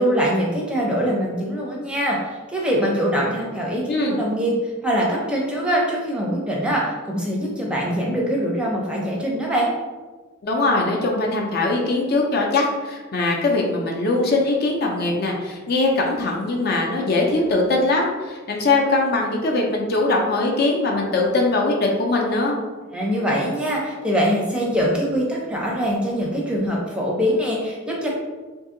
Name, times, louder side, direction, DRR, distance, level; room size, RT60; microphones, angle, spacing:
voice 1, 0.0-2.2 2.5-4.6 4.8-9.7 22.9-28.1, equal, 5° right, -3 dB, 0.6 m, -23 dB
voice 2, 10.4-22.6, left 2 dB, 50° left, 0 dB, 0.5 m, -21 dB
2.7 x 2.7 x 3.7 m, 1.3 s
head